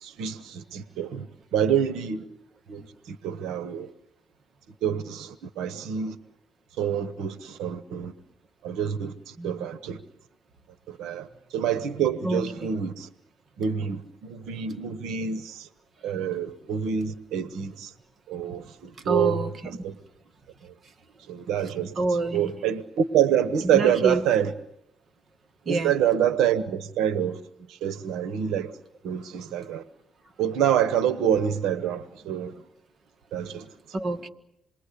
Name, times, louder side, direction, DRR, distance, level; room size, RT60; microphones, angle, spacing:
voice 1, 0.0-1.3 1.5-2.2 2.7-2.8 3.1-3.9 4.8-6.2 6.8-8.1 8.6-10.0 10.9-13.1 13.6-15.7 16.0-17.9 18.3-19.4 19.7-19.9 21.3-21.9 22.3-24.5 25.7-27.4 27.7-28.7 29.0-29.8 30.4-32.5 33.3-33.7, right 9 dB, 90° right, 1.1 m, -26 dB
voice 2, 12.2-12.8 19.1-19.8 22.0-22.5 23.7-24.2 25.7-25.9 33.9-34.3, right 2 dB, 45° right, 1.9 m, -27 dB
27.5 x 21.5 x 8.4 m
cardioid pair, 90°, 0 cm